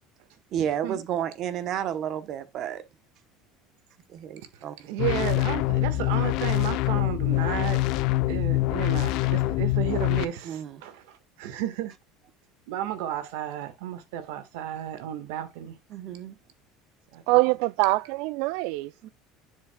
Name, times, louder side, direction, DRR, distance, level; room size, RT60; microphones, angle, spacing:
voice 1, 0.5-2.8 4.1-4.8 10.4-10.8 15.9-16.4 19.0-19.1, right 9 dB, 45° right, 0.9 m, -31 dB
voice 2, 4.5-7.8 8.3-11.9 12.7-15.8 17.1-17.4, right 11 dB, 90° right, 1.6 m, -33 dB
sound 1, 5.0-10.2, left 18 dB, 60° left, 0.6 m, -25 dB
voice 3, 17.3-19.1, right 22 dB, 75° right, 0.3 m, -24 dB
10.5 x 7.3 x 2.3 m
cardioid pair, 160°, 0 cm